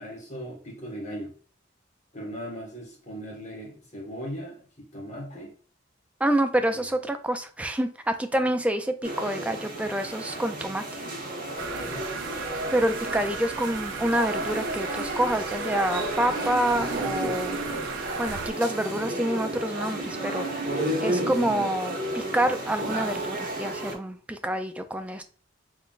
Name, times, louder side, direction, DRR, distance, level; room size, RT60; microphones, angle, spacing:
voice 1, 0.0-1.3 2.1-5.5 6.7-6.8 11.8-12.1, equal, 35° left, -2 dB, 1.6 m, -38 dB
voice 2, 6.2-10.8 12.7-17.6 18.2-20.7 21.0-25.2, right 1 dB, 5° right, 7 dB, 0.3 m, -27 dB
sound 1, 9.0-23.9, right 1 dB, 50° right, 1.2 m, -32 dB
sound 2, 11.6-18.5, right 6 dB, 85° right, 0.4 m, -37 dB
3.7 x 3.7 x 2.4 m, 0.41 s
head